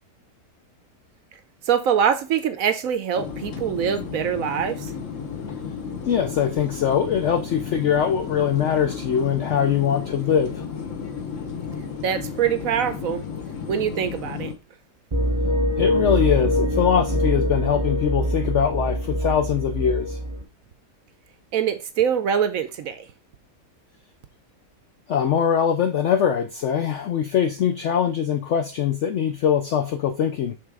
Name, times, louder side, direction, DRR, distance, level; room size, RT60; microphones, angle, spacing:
voice 1, 1.7-4.9 12.0-13.2 13.7-14.5 21.5-23.0, right 8 dB, 65° right, 0.9 m, -24 dB
sound 1, 3.1-14.5, left 6 dB, 55° left, 1.2 m, -33 dB
voice 2, 6.0-10.6 15.8-20.2 25.1-30.5, left 8 dB, 75° left, 0.6 m, -22 dB
sound 2, 15.1-20.4, equal, 25° right, 0.9 m, -24 dB
6.2 x 3.7 x 4.7 m
omnidirectional pair, 1.8 m